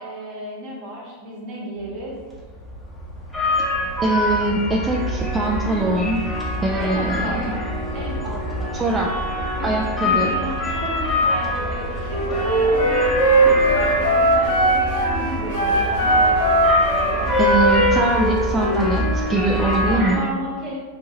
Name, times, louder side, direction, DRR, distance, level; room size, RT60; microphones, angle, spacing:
voice 1, 0.0-2.2 6.6-7.6 7.9-8.8 9.5-17.3 19.9-20.8, equal, 40° right, -3 dB, 1.0 m, -33 dB
sound 1, 2.3-20.1, left 1 dB, 5° left, 0.8 m, -25 dB
voice 2, 4.0-6.2 6.6-7.5 8.7-9.1 9.6-10.4 17.4-20.2, right 2 dB, 15° right, -3 dB, 0.3 m, -22 dB
Wind instrument woodwind instrument, 12.0-15.1 15.5-18.9, right 1 dB, 70° left, 1.0 m, -19 dB
4.0 x 2.2 x 2.9 m, 1.5 s
figure-of-eight pair, 90°, 0 cm